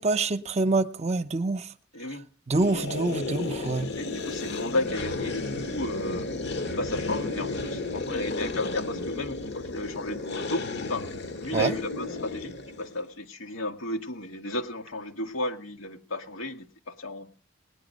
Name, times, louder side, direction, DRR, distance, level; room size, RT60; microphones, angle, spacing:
voice 1, 0.0-1.7 2.5-3.9 11.5-11.7, right 3 dB, 35° right, 0.7 m, -26 dB
voice 2, 1.9-2.3 3.9-6.3 6.8-11.1 11.4-17.3, left 1 dB, 85° left, 1.4 m, -33 dB
sound 1, 2.6-13.0, left 3 dB, 60° left, 1.1 m, -33 dB
19.0 x 10.0 x 5.3 m
head